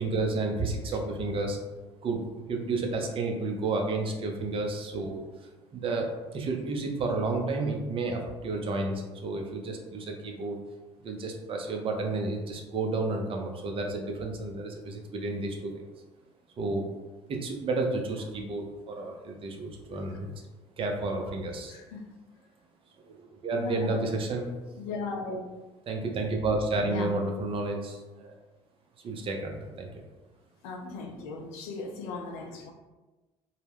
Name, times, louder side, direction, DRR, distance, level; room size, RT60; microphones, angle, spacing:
voice 1, 0.0-1.6 2.0-10.6 11.0-15.9 16.6-16.8 17.3-20.3 20.8-21.8 23.0-24.5 25.9-28.3 29.0-30.0, right 3 dB, 40° right, 2 dB, 0.5 m, -31 dB
voice 2, 19.7-20.2 21.7-22.0 23.5-23.9 24.8-25.5 26.9-27.1 30.6-32.7, left 3 dB, 70° left, 3 dB, 0.4 m, -37 dB
2.2 x 2.1 x 3.3 m, 1.1 s
hypercardioid pair, 60°, 14 cm